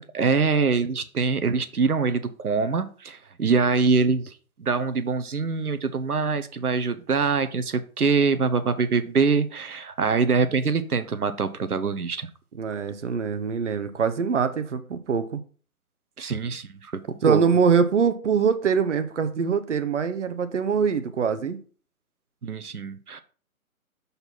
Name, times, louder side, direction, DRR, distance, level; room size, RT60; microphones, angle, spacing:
voice 1, 0.1-12.3 16.2-16.9 17.3-17.4 22.4-23.2, right 4 dB, 85° right, 0.8 m, -24 dB
voice 2, 12.6-15.4 17.2-21.6, right 6 dB, 55° right, 0.8 m, -23 dB
6.6 x 4.2 x 4.3 m
figure-of-eight pair, 140°, 44 cm